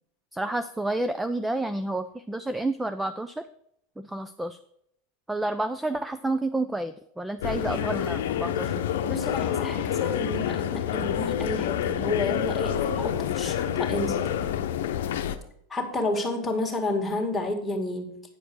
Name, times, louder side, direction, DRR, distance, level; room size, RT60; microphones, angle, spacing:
voice 1, 0.3-3.4 4.0-4.6 5.3-8.7, right 2 dB, 5° right, 11 dB, 0.5 m, -30 dB
sound 1, 7.4-15.4, left 10 dB, 75° left, 0.8 m, -28 dB
voice 2, 9.1-14.3 15.7-18.2, left 2 dB, 10° left, 1 dB, 2.1 m, -30 dB
9.3 x 5.0 x 6.2 m, 0.70 s
hypercardioid pair, 105°, 0 cm